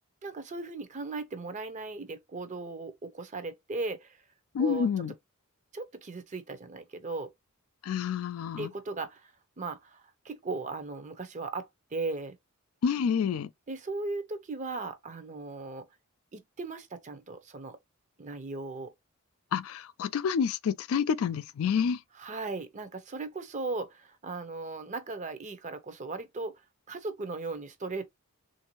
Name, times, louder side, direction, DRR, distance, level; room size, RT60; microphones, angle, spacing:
voice 1, 0.2-4.2 4.6-5.0 5.7-7.3 8.6-12.4 13.7-15.9 16.3-17.8 18.2-18.9 22.1-28.0, right 3 dB, 35° right, 0.6 m, -37 dB
voice 2, 4.5-5.1 7.8-8.7 12.8-13.5 19.5-22.0, left 7 dB, 70° left, 0.3 m, -28 dB
3.4 x 2.6 x 2.9 m
head